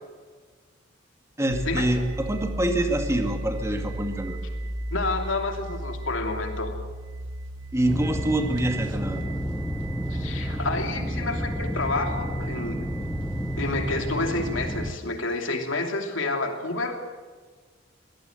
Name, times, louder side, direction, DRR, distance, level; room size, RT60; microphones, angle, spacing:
voice 1, 1.4-4.4 7.7-9.2, right 1 dB, 15° right, 4 dB, 2.3 m, -26 dB
sound 1, 1.5-15.0, right 1 dB, 70° right, 1.4 m, -35 dB
voice 2, 4.9-6.7 10.1-12.8 13.6-17.0, left 2 dB, 90° left, 4 dB, 2.9 m, -29 dB
sound 2, 7.9-14.9, equal, 5° left, 0.8 m, -31 dB
22.5 x 17.5 x 7.9 m, 1.5 s
head